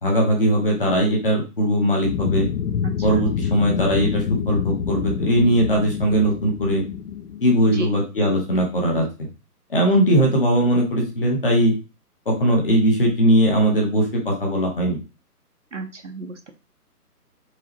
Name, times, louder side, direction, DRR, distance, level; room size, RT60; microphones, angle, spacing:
voice 1, 0.0-2.5 3.0-6.8 7.4-9.1 9.7-11.7 12.2-15.0, equal, 35° left, 0 dB, 1.2 m, -19 dB
sound 1, 2.0-7.6, left 7 dB, 75° left, 0.5 m, -27 dB
voice 2, 2.8-3.3 7.7-7.9 15.7-16.5, right 2 dB, 50° right, 6 dB, 0.6 m, -33 dB
4.7 x 3.1 x 2.9 m, 0.31 s
hypercardioid pair, 180°, 47 cm